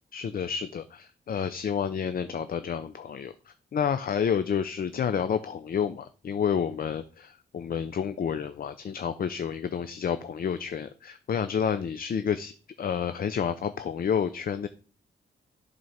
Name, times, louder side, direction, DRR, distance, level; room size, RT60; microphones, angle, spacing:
voice 1, 0.1-12.5 12.8-14.7, left 7 dB, 50° left, 11 dB, 0.5 m, -30 dB
7.8 x 3.9 x 5.7 m, 0.40 s
cardioid pair, 105°, 19 cm